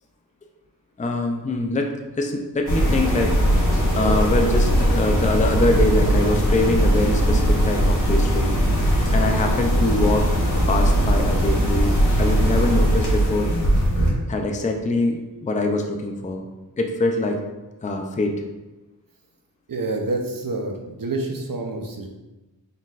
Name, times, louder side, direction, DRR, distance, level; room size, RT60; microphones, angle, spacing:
voice 1, 1.0-3.4 3.9-8.5 9.1-10.3 10.7-13.7 14.3-16.5 16.8-17.4 17.8-18.4, left 2 dB, 20° left, 3 dB, 0.4 m, -24 dB
sound 1, 2.7-14.1, equal, 45° left, 1.5 m, -19 dB
voice 2, 19.7-22.1, right 2 dB, 50° right, 2 dB, 0.7 m, -27 dB
3.9 x 3.9 x 2.4 m, 1.1 s
cardioid pair, 45°, 43 cm